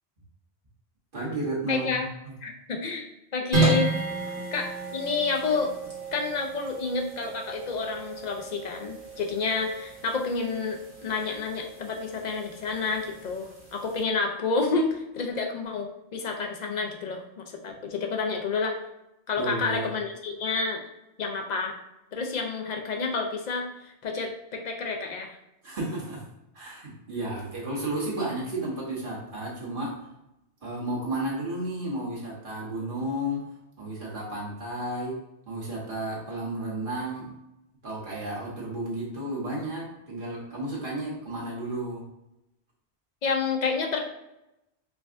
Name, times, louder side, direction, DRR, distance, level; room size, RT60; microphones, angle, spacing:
voice 1, 1.1-2.0 4.3-4.4 19.4-19.9 25.6-26.3 26.5-30.0 30.6-33.5 33.8-35.2 35.5-37.3 37.8-42.0, right 1 dB, 50° right, -5 dB, 1.3 m, -32 dB
voice 2, 1.7-2.1 2.4-3.9 4.5-5.7 6.1-18.8 19.3-20.8 21.2-21.8 22.1-25.4 43.2-44.0, left 4 dB, 55° left, 3 dB, 0.5 m, -29 dB
sound 1, 3.5-14.0, right 3 dB, 30° right, 1.1 m, -33 dB
4.6 x 2.3 x 2.5 m, 0.89 s
omnidirectional pair, 1.1 m